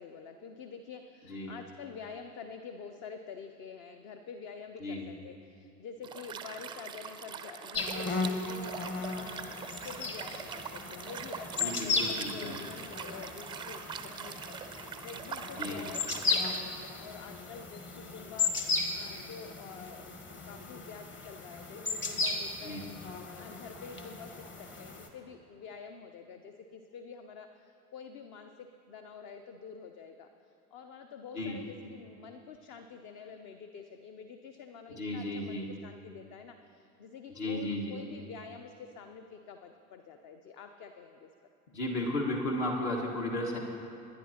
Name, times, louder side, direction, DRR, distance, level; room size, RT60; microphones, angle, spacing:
voice 1, 0.0-23.0 23.4-41.3, left 5 dB, 40° left, 7 dB, 0.7 m, -48 dB
Liquid, 6.0-16.6, right 6 dB, 10° right, 0.4 m, -43 dB
sound 1, 7.7-25.1, left 4 dB, 25° left, 1.2 m, -36 dB
voice 2, 11.6-12.6 15.6-15.8 22.6-22.8 31.3-31.6 34.9-35.7 37.3-38.0 41.7-43.6, left 1 dB, 55° left, -2 dB, 1.8 m, -34 dB
20.0 x 10.5 x 2.9 m, 2.6 s
figure-of-eight pair, 80°, 47 cm